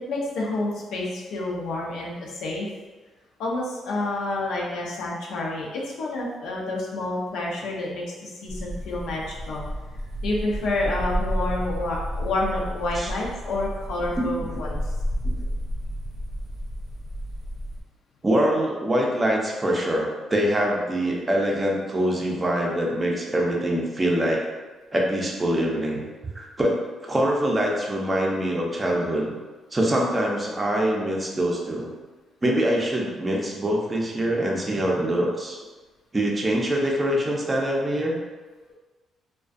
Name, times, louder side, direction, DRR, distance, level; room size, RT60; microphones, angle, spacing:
voice 1, 0.1-2.7 3.4-9.6 10.2-14.9, left 2 dB, 85° left, -3 dB, 0.5 m, -29 dB
sound 1, 8.5-17.8, equal, 70° right, 0.6 m, -31 dB
voice 2, 14.1-14.6 15.2-15.3 18.2-24.4 24.9-26.0 26.3-29.3 29.7-31.9 32.4-35.6 36.1-38.2, right 1 dB, 25° right, -1 dB, 0.5 m, -24 dB
2.4 x 2.2 x 2.4 m, 1.3 s
cardioid pair, 90°, 0 cm